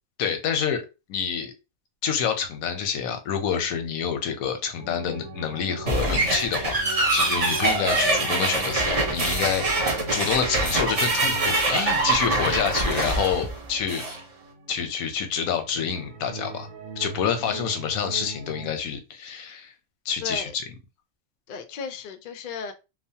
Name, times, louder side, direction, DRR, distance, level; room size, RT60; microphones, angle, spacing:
voice 1, 0.2-0.8 1.1-1.5 2.0-9.7 10.1-14.0 14.7-16.7 17.0-19.7 20.1-20.5, left 7 dB, 90° left, 1.1 m, -27 dB
sound 1, 4.8-15.2 15.5-18.7, right 2 dB, 75° right, 1.2 m, -39 dB
sound 2, 5.9-14.2, right 2 dB, 40° right, 0.5 m, -24 dB
voice 2, 12.3-12.6 17.4-17.6 20.2-20.5 21.5-22.7, left 5 dB, 70° left, 0.4 m, -35 dB
3.0 x 2.0 x 2.7 m
omnidirectional pair, 1.4 m